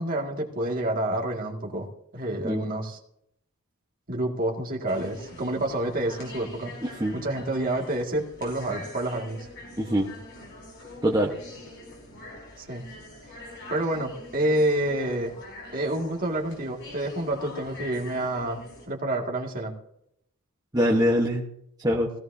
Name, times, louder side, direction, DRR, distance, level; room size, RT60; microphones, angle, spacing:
voice 1, 0.0-1.9 2.1-3.0 4.1-6.7 7.1-9.5 12.6-12.8 13.7-15.3 15.7-18.6 18.9-19.7, right 1 dB, 40° right, 1 dB, 2.2 m, -28 dB
sound 1, 4.9-18.9, left 2 dB, 55° left, 5.3 m, -44 dB
voice 2, 6.8-7.2 9.8-10.1 11.0-11.3 20.7-21.5 21.8-22.1, equal, 15° right, -2 dB, 1.1 m, -23 dB
17.0 x 15.5 x 2.7 m, 0.74 s
head